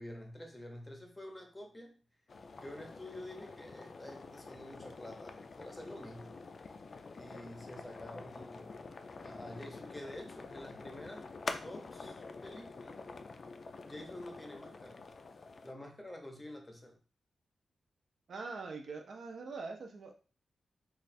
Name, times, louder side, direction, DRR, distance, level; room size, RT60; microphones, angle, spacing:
voice 1, 0.0-2.0 2.6-6.3 7.1-8.8 9.2-11.3 11.6-13.1 13.8-15.0 15.6-17.0, left 1 dB, 10° left, 3 dB, 0.7 m, -48 dB
sound 1, 2.3-15.7, left 4 dB, 45° left, 0.3 m, -47 dB
voice 2, 18.3-20.1, right 4 dB, 60° right, 3 dB, 0.6 m, -43 dB
3.1 x 2.4 x 4.1 m, 0.37 s
wide cardioid pair, 150°, 0 cm